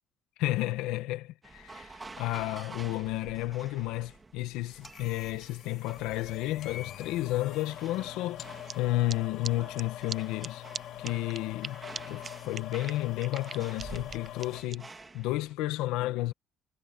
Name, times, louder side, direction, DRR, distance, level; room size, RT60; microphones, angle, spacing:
voice 1, 0.4-10.6 11.0-11.8 12.1-14.9 15.1-16.3, left 16 dB, 85° left, 1.4 m, -32 dB
sound 1, 1.4-15.5, right 3 dB, 20° right, 2.7 m, -50 dB
sound 2, 4.8-14.6, left 12 dB, 65° left, 2.4 m, -44 dB
sound 3, 8.7-8.8 9.1-9.2 9.4-9.5 9.8-9.9 10.1-10.2 10.4-10.5 10.7-10.8 11.0-11.7 11.9-12.0 12.2-12.3 12.5-14.7, right 6 dB, 35° right, 0.5 m, -39 dB
cardioid pair, 105°, 0 cm